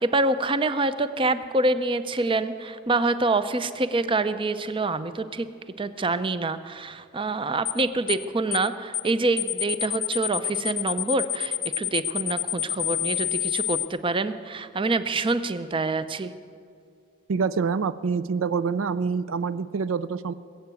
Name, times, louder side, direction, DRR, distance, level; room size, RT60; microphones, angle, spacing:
voice 1, 0.0-5.5 5.8-16.3, right 2 dB, 25° right, 12 dB, 0.5 m, -26 dB
sound 1, 7.6-7.8 8.1-8.2 8.5-8.7 8.9-9.1 9.4-13.9, left 11 dB, 20° left, 0.5 m, -28 dB
voice 2, 17.3-20.3, right 5 dB, 75° right, 15 dB, 0.4 m, -26 dB
20.0 x 7.8 x 8.3 m, 2.3 s
head